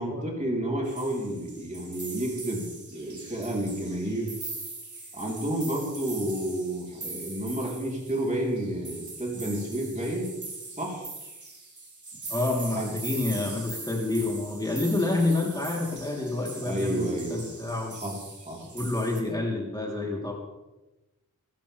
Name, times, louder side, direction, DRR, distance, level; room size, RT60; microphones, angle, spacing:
voice 1, 0.0-4.4 5.1-10.3 10.7-11.1 12.7-12.9 16.6-17.5 17.9-18.7, right 1 dB, 25° right, -3 dB, 4.0 m, -31 dB
sound 1, 0.8-19.2, right 3 dB, 65° right, 3.5 m, -41 dB
voice 2, 12.3-17.9 18.7-20.3, left 2 dB, 10° left, -2 dB, 3.6 m, -28 dB
23.5 x 13.5 x 3.5 m, 1.0 s
wide cardioid pair, 70°, 31 cm